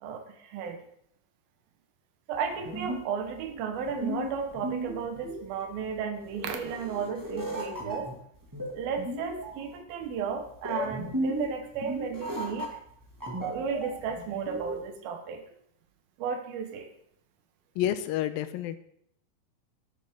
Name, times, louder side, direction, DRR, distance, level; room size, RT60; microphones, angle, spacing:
voice 1, 0.0-0.8 2.3-8.1 8.7-12.7 13.4-15.4 16.2-16.9, right 6 dB, 80° right, 5 dB, 3.0 m, -34 dB
sound 1, 2.3-14.9, right 1 dB, 10° right, 1.0 m, -36 dB
voice 2, 17.8-18.8, left 11 dB, 85° left, 11 dB, 2.4 m, -29 dB
13.5 x 9.7 x 3.7 m, 0.70 s
omnidirectional pair, 4.2 m